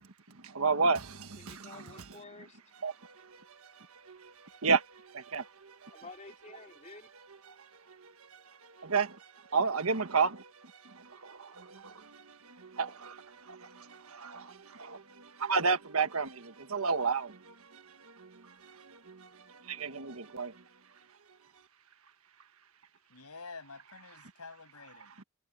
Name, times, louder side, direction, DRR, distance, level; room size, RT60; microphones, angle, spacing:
voice 1, 0.4-1.7 2.8-3.1 4.1-4.3 4.6-5.7 8.8-9.2 9.5-10.4 10.8-17.8 18.2-18.3 18.7-19.3 19.7-20.5 25.2-25.3, right 4 dB, 70° right, 1.5 m, -32 dB
voice 2, 1.4-2.6 5.8-7.1, left 3 dB, 30° left, 4.2 m, -51 dB
voice 3, 23.1-25.1, left 4 dB, 85° left, 6.4 m, -48 dB
head